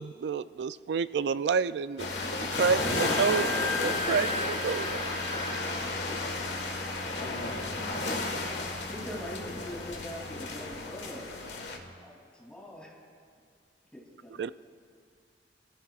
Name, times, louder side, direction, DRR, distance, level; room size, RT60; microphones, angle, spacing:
voice 1, 0.0-2.1 2.4-3.5 3.8-4.3 4.6-5.1 14.4-14.5, right 5 dB, 70° right, 15 dB, 0.3 m, -29 dB
sound 1, 2.0-11.8, left 2 dB, 75° left, 1.5 m, -33 dB
Wind instrument woodwind instrument, 2.7-10.0, left 1 dB, 50° right, 2.1 m, -40 dB
voice 2, 3.0-4.5 4.8-4.9 7.1-8.2, left 1 dB, 55° left, -6 dB, 3.0 m, -41 dB
voice 3, 8.9-11.3 11.6-12.9 13.9-14.5, equal, 5° left, -4 dB, 2.9 m, -43 dB
25.0 x 15.0 x 2.4 m, 2.2 s
head